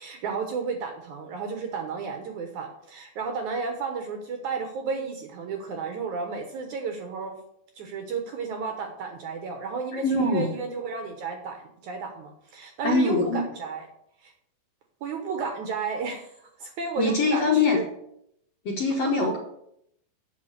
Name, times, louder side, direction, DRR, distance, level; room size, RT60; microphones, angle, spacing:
voice 1, 0.0-7.4 7.8-13.9 14.2-14.3 15.0-17.9 19.2-19.4, right 5 dB, 65° right, 5 dB, 2.0 m, -33 dB
voice 2, 9.9-10.5 12.8-13.4 17.0-17.8 18.7-19.4, left 3 dB, 60° left, 0 dB, 1.8 m, -23 dB
8.4 x 6.6 x 6.6 m, 0.74 s
omnidirectional pair, 4.3 m